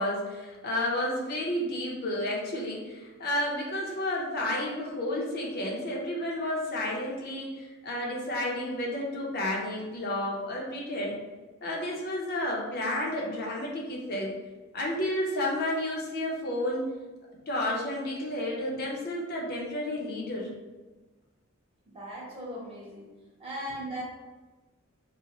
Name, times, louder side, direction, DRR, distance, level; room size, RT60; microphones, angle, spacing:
voice 1, 0.0-11.1 11.6-14.3 14.7-16.9 17.5-20.5, left 1 dB, 50° left, -2 dB, 0.6 m, -31 dB
voice 2, 21.9-23.1 23.4-24.0, equal, 30° right, -6 dB, 1.0 m, -38 dB
2.9 x 2.0 x 3.7 m, 1.2 s
head